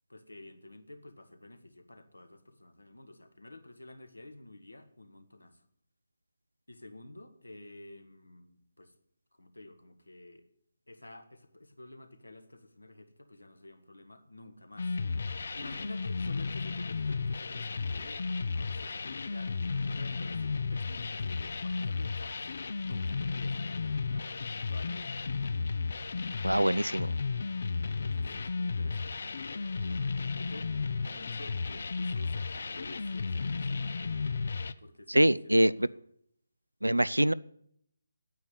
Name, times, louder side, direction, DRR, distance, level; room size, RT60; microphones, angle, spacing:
voice 1, 0.1-5.6 6.7-8.9 9.3-10.4 10.9-15.0 15.5-18.2 18.5-22.5 22.8-25.1 27.9-33.9 34.8-35.9, left 1 dB, 75° left, 8 dB, 1.8 m, -51 dB
sound 1, 14.8-34.7, left 4 dB, 50° left, 0.6 m, -34 dB
voice 2, 26.4-27.1 35.1-35.9 36.8-37.3, right 1 dB, 85° right, 18 dB, 0.4 m, -24 dB
9.3 x 8.4 x 9.7 m, 0.71 s
figure-of-eight pair, 150°, 0 cm